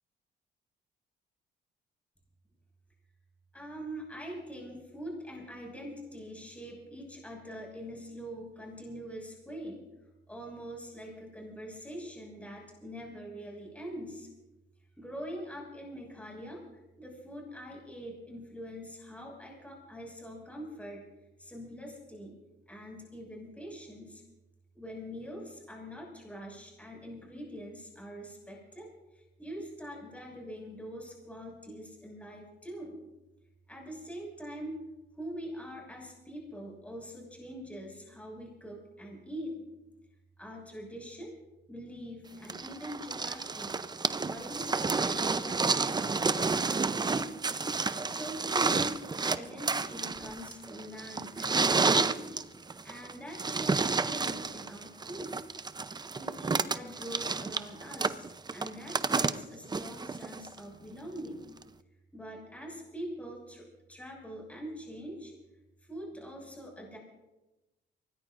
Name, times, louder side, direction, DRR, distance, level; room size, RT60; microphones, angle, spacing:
voice 1, 3.5-9.8 10.3-14.3 15.0-16.6 17.0-21.0 21.4-22.4 22.7-24.2 24.7-28.9 29.1-33.0 33.7-34.8 35.1-39.8 40.4-41.3 41.7-43.8 44.2-47.3 48.0-49.0 49.2-52.4 52.8-55.4 56.1-58.3 58.5-61.5 62.1-65.3 65.8-67.0, equal, 5° left, -1 dB, 6.1 m, -43 dB
sound 1, 42.5-60.6 61.6-61.7, right 4 dB, 20° right, 0.6 m, -30 dB
24.0 x 19.0 x 2.6 m, 1.0 s
cardioid pair, 90°, 20 cm